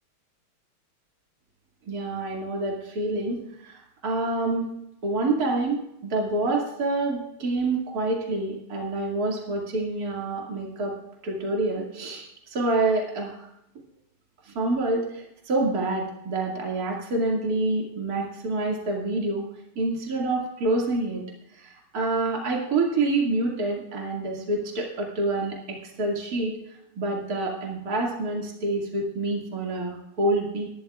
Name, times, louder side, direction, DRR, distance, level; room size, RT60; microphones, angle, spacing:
voice 1, 1.9-4.7 5.0-11.0 11.2-13.5 14.5-19.5 19.8-21.2 21.6-26.5 27.0-30.7, right 2 dB, 45° right, -1 dB, 2.7 m, -27 dB
23.0 x 12.0 x 2.4 m, 0.80 s
omnidirectional pair, 2.4 m